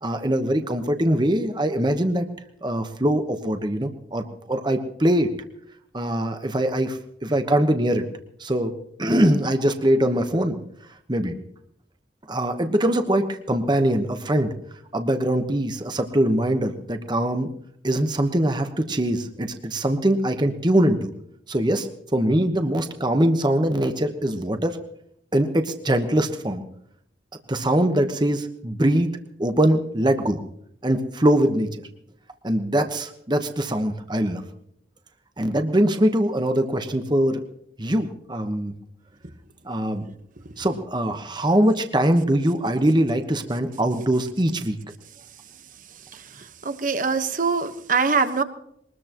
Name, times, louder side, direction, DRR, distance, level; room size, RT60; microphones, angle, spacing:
voice 1, 0.0-2.2 2.6-5.3 5.9-8.0 8.4-8.7 9.0-10.6 11.1-11.4 12.3-14.5 14.9-17.5 17.8-21.1 21.5-24.8 25.3-26.6 27.5-29.1 29.4-30.4 30.8-31.8 32.4-34.4 35.4-37.4 37.8-38.7 39.6-40.1 40.6-44.8, right 1 dB, 25° right, 7 dB, 1.2 m, -22 dB
voice 2, 46.1-48.4, right 4 dB, 45° right, 9 dB, 1.3 m, -24 dB
23.0 x 20.0 x 3.0 m, 0.73 s
head